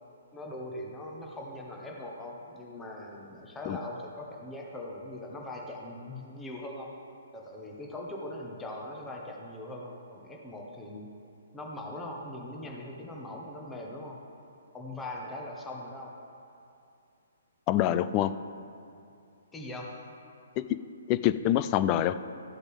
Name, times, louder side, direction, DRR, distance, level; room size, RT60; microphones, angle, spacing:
voice 1, 0.3-6.9 7.3-11.1 11.5-14.2 14.7-16.1 19.5-19.9, left 1 dB, 10° left, -1 dB, 1.4 m, -41 dB
voice 2, 17.7-18.3 20.6-20.8 21.1-22.1, left 12 dB, 30° left, 13 dB, 0.4 m, -25 dB
13.5 x 7.9 x 3.6 m, 2.6 s
figure-of-eight pair, 130°, 0 cm